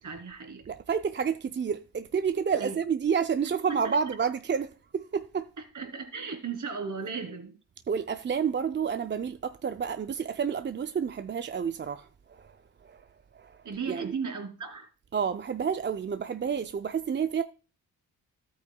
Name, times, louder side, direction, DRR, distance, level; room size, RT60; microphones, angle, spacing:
voice 1, 0.0-0.7 2.6-2.8 3.7-4.0 5.6-7.6 13.6-14.9, right 5 dB, 55° right, 3.0 m, -36 dB
voice 2, 0.7-5.5 7.9-12.6 12.8-13.0 13.3-13.6 13.9-14.1 15.1-17.4, right 6 dB, 30° right, 0.5 m, -30 dB
14.0 x 8.6 x 2.3 m
supercardioid pair, 55°, 37 cm